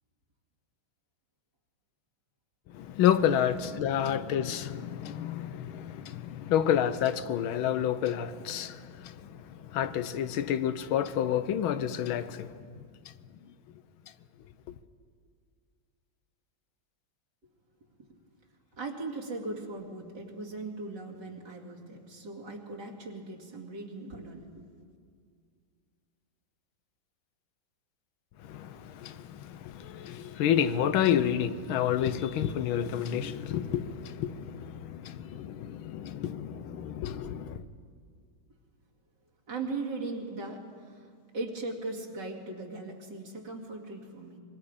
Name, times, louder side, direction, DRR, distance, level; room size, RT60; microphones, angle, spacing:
voice 1, 2.7-12.5 28.5-37.6, left 9 dB, 80° left, 1.6 m, -29 dB
voice 2, 18.8-24.5 39.5-41.1 41.3-44.4, right 3 dB, 60° right, 3.1 m, -38 dB
25.5 x 22.5 x 5.0 m
omnidirectional pair, 2.2 m